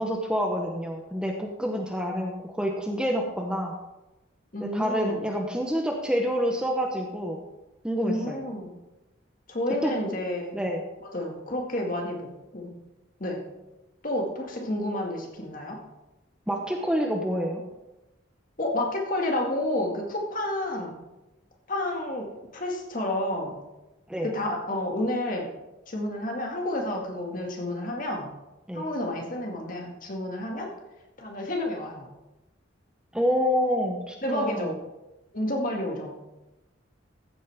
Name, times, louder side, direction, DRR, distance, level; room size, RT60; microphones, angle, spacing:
voice 1, 0.0-3.7 4.6-7.4 7.8-8.4 9.8-9.9 10.5-10.8 16.5-17.6 24.1-24.3 28.7-28.8 33.1-34.7, equal, 5° right, 1 dB, 0.9 m, -27 dB
voice 2, 4.5-5.2 8.0-8.8 9.5-10.6 11.1-12.7 13.2-13.4 14.0-15.8 18.6-21.0 21.7-23.6 24.2-25.5 25.9-28.3 28.7-30.7 31.2-32.1 34.2-34.8 35.3-36.2, left 1 dB, 45° left, 1 dB, 2.0 m, -30 dB
14.5 x 8.5 x 3.6 m, 1.0 s
head